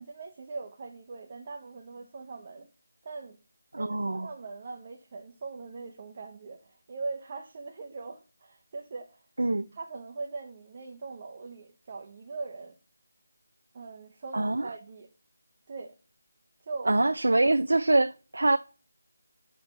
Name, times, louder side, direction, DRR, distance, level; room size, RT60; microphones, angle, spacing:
voice 1, 0.0-2.7 3.0-3.4 3.7-9.2 9.7-12.8 13.7-15.1 15.7-15.9 16.6-16.9, right 4 dB, 35° right, 0.7 m, -41 dB
voice 2, 3.7-4.3 9.4-9.7 14.3-14.7 16.9-18.6, right 2 dB, 75° right, 0.3 m, -24 dB
6.1 x 3.2 x 5.1 m
figure-of-eight pair, 165°, 0 cm